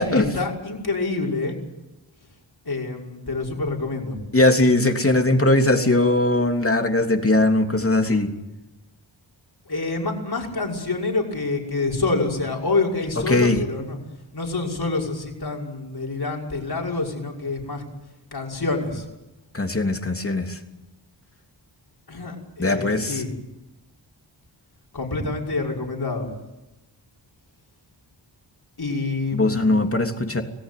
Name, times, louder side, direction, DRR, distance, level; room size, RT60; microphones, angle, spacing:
voice 1, 0.0-1.6 2.6-4.2 9.7-14.0 14.3-17.8 18.3-19.1 22.1-23.3 24.9-26.3 28.8-30.0, left 3 dB, 50° left, 0 dB, 5.9 m, -27 dB
voice 2, 4.3-8.3 13.3-13.6 19.5-20.6 22.6-23.2 29.3-30.4, left 2 dB, 30° left, 5 dB, 3.1 m, -20 dB
25.5 x 17.0 x 9.4 m, 0.97 s
cardioid pair, 50°, 46 cm